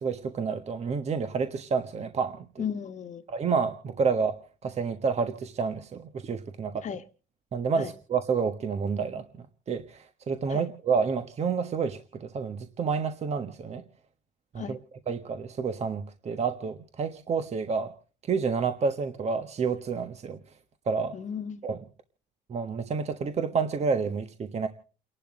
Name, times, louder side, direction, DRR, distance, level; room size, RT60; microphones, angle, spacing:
voice 1, 0.0-2.6 3.3-6.8 7.5-9.2 9.7-13.8 14.5-14.8 15.1-17.9 18.3-20.4 20.9-21.1 21.6-21.8 22.5-24.7, right 5 dB, 40° right, 1.3 m, -29 dB
voice 2, 2.6-3.2 6.8-7.0 7.8-7.9 10.5-10.6 14.6-14.8 21.1-21.6, left 7 dB, 45° left, 1.4 m, -35 dB
30.0 x 11.5 x 3.8 m
cardioid pair, 110°, 17 cm